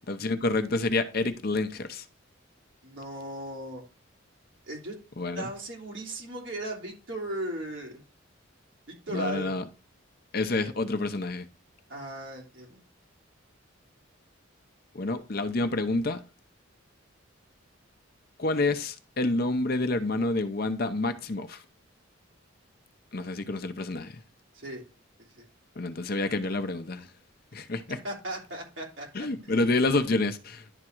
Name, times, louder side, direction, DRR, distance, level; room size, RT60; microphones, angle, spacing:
voice 1, 0.1-2.1 5.2-5.5 9.1-9.6 10.3-11.4 14.9-16.2 18.4-21.6 23.1-24.2 25.8-27.1 27.5-28.0 29.1-30.6, left 2 dB, 45° left, 0.7 m, -28 dB
voice 2, 2.8-3.8 4.7-4.9 5.3-8.0 8.9-9.5 11.9-12.8 24.5-24.8 25.3-25.5 28.0-29.7, right 1 dB, 65° right, 3.1 m, -37 dB
11.0 x 3.7 x 4.5 m
head